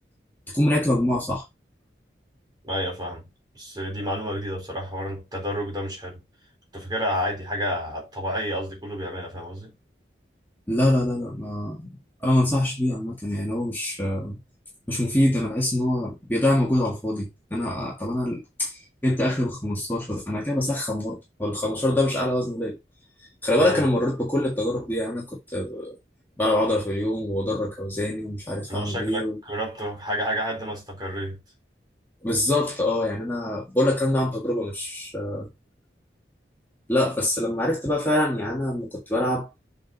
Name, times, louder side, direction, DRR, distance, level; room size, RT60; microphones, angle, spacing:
voice 1, 0.5-1.4 10.7-11.9 12.2-14.4 14.9-22.8 23.2-26.0 26.4-29.4 32.2-35.5 36.9-39.5, left 1 dB, 10° left, 1.7 m, -25 dB
voice 2, 2.6-3.2 3.5-6.2 6.7-9.7 23.6-23.8 28.7-31.4, equal, 25° right, 3.9 m, -30 dB
7.4 x 4.3 x 4.0 m
head